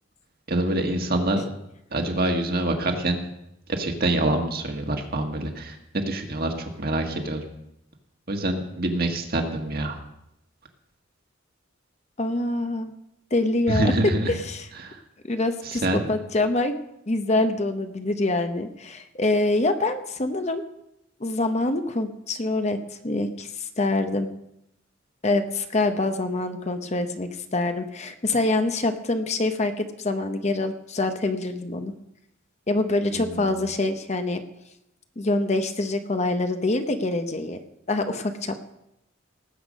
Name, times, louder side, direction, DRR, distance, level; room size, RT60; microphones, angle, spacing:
voice 1, 0.5-1.5 1.9-3.2 3.7-7.4 8.3-10.0 13.7-14.3 14.8-15.0 15.6-16.0 33.1-33.5, right 1 dB, 50° right, 3 dB, 1.7 m, -26 dB
voice 2, 12.2-12.9 13.3-14.7 15.3-16.7 17.1-20.6 21.2-24.3 25.2-31.9 32.7-34.4 35.2-37.6 37.9-38.7, left 2 dB, 35° left, 8 dB, 0.8 m, -25 dB
18.5 x 8.1 x 5.2 m, 0.83 s
head